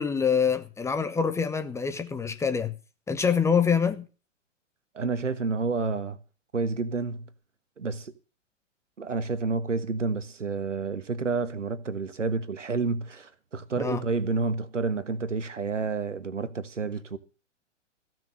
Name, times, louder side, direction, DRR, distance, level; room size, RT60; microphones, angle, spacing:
voice 1, 0.0-2.7 3.1-4.1 13.8-14.0, left 6 dB, 10° left, 0.7 m, -25 dB
voice 2, 4.9-6.2 6.5-7.3 7.8-8.1 9.0-17.2, right 4 dB, 80° right, 1.4 m, -29 dB
15.5 x 6.2 x 8.5 m
figure-of-eight pair, 110°, 37 cm